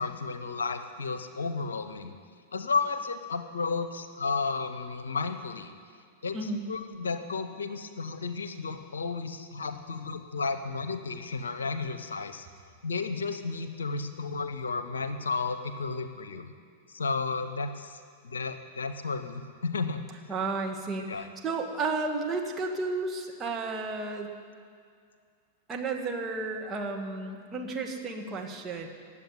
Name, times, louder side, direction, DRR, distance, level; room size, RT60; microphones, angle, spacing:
voice 1, 0.0-2.1 2.5-5.7 6.2-12.5 12.8-16.5 16.9-18.0 18.2-20.0 21.1-21.3, left 4 dB, 70° left, 9 dB, 1.0 m, -33 dB
voice 2, 6.3-6.6 20.3-24.3 25.7-28.9, right 3 dB, 20° right, 1 dB, 2.0 m, -32 dB
18.0 x 7.7 x 9.7 m, 2.2 s
figure-of-eight pair, 95°, 0 cm